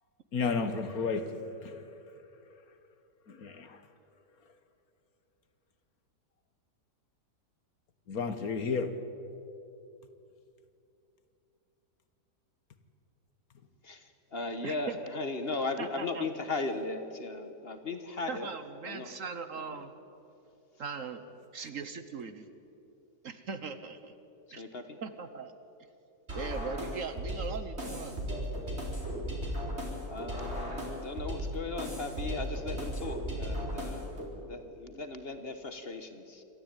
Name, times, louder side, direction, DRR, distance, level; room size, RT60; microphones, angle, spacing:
voice 1, 0.3-1.4 1.6-1.8 3.3-3.8 8.1-8.9, left 5 dB, 60° left, 9 dB, 1.7 m, -32 dB
voice 2, 13.8-18.5 18.9-19.1 19.7-19.9 24.5-25.0 30.1-36.4, left 3 dB, 40° left, 8 dB, 1.4 m, -37 dB
voice 3, 14.6-15.0 15.8-16.2 18.3-19.9 20.8-21.2 21.5-22.5 23.2-24.1 24.5-24.6 25.0-25.5 26.3-28.2, right 5 dB, 55° right, 10 dB, 1.3 m, -39 dB
sound 1, 26.3-34.3, equal, 40° right, 4.5 m, -36 dB
28.0 x 13.0 x 9.0 m, 2.8 s
omnidirectional pair, 1.8 m